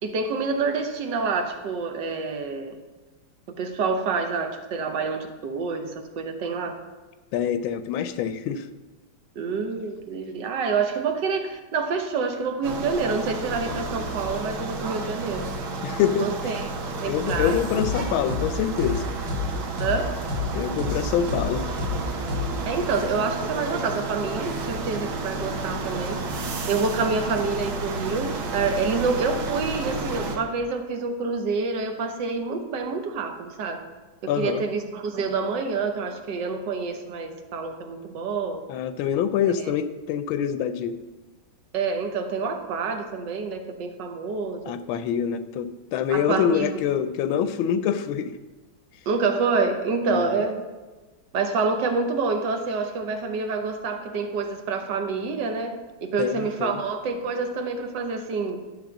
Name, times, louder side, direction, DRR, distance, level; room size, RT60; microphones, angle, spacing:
voice 1, 0.0-2.8 3.6-6.8 9.4-15.5 16.2-16.7 17.0-17.6 19.8-20.1 22.7-26.2 26.7-33.8 34.2-38.6 39.6-39.7 41.7-44.6 46.1-46.7 49.1-50.6 51.3-58.6, right 4 dB, 65° right, 6 dB, 1.5 m, -27 dB
voice 2, 7.3-8.7 15.8-16.4 17.0-19.0 20.5-21.7 34.3-34.6 38.7-41.0 44.6-48.4 50.1-50.4 56.2-56.8, left 8 dB, 85° left, 12 dB, 1.4 m, -25 dB
sound 1, 12.6-30.4, right 3 dB, 90° right, 1.8 m, -31 dB
sound 2, 17.3-17.4 17.8-17.9 18.3-18.4 18.8-18.9 19.3-19.4 19.8-19.9 20.3-20.4 20.8-20.9 21.3-21.4 21.8-21.9 22.3-22.4, left 4 dB, 35° right, 1.3 m, -28 dB
11.0 x 3.8 x 7.1 m, 1.2 s
omnidirectional pair, 2.2 m